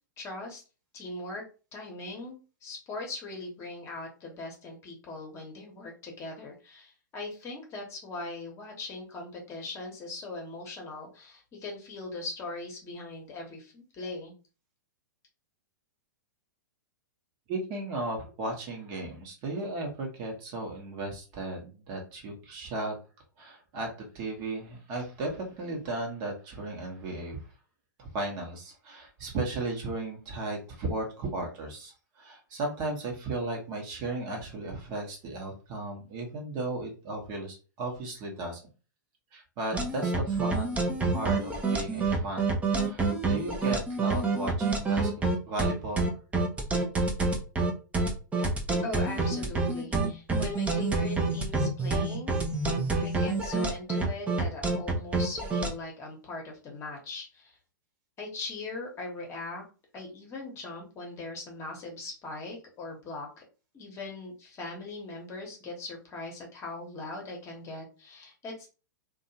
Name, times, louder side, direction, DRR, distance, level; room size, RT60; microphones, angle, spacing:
voice 1, 0.2-0.6 0.9-1.4 1.7-14.3 48.8-52.3 52.9-57.6 58.2-59.6 59.9-63.4 63.7-68.7, left 2 dB, 25° left, 0 dB, 1.0 m, -40 dB
voice 2, 17.5-22.9 23.4-23.9 24.1-27.4 28.0-38.6 39.3-42.5 42.9-45.1 45.5-46.1, right 2 dB, 40° right, 1 dB, 1.0 m, -35 dB
sound 1, 39.7-55.7, right 3 dB, 15° right, 0.6 m, -27 dB
2.7 x 2.3 x 2.7 m, 0.34 s
hypercardioid pair, 110°, 10 cm